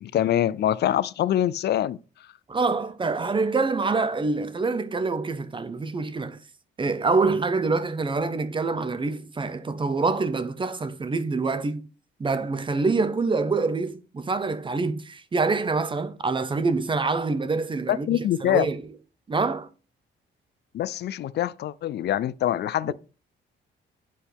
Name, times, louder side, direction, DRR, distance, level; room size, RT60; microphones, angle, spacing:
voice 1, 0.0-2.0 17.9-18.7 20.7-22.9, left 11 dB, 55° left, 0.4 m, -24 dB
voice 2, 2.5-6.4 6.8-11.9 12.2-18.8 19.3-19.7 22.9-23.0, right 3 dB, 25° right, 0.7 m, -26 dB
9.3 x 4.2 x 3.5 m
cardioid pair, 90°, 20 cm